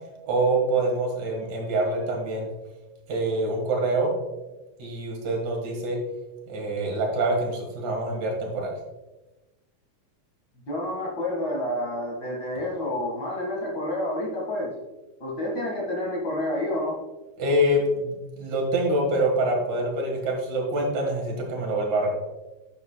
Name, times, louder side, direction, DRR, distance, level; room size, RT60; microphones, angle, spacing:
voice 1, 0.2-2.5 3.1-4.1 4.8-6.0 6.5-8.7 17.4-22.1, right 1 dB, 75° right, 1 dB, 3.0 m, -25 dB
voice 2, 10.7-14.7 15.2-16.9, left 1 dB, 40° left, -3 dB, 2.2 m, -29 dB
10.0 x 7.1 x 2.2 m, 1.1 s
omnidirectional pair, 3.4 m